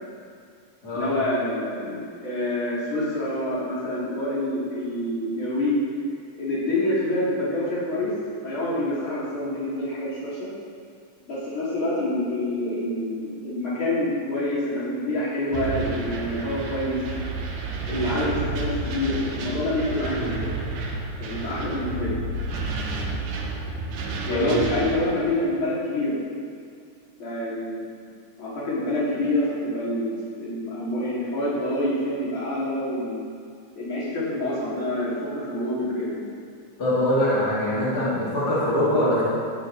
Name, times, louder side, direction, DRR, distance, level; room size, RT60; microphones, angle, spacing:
voice 1, 0.9-5.8 6.4-8.1 8.4-10.5 11.3-17.0 17.9-20.5 21.2-22.2 24.3-26.2 27.2-27.8 28.4-30.1 30.4-33.2 33.8-36.2, left 1 dB, 70° left, -9 dB, 6.3 m, -27 dB
sound 1, 15.5-25.0, right 2 dB, 80° right, 3.0 m, -30 dB
voice 2, 24.3-24.6 36.8-39.2, equal, 30° left, -9 dB, 4.8 m, -23 dB
18.0 x 15.5 x 4.1 m, 2.3 s
omnidirectional pair, 3.5 m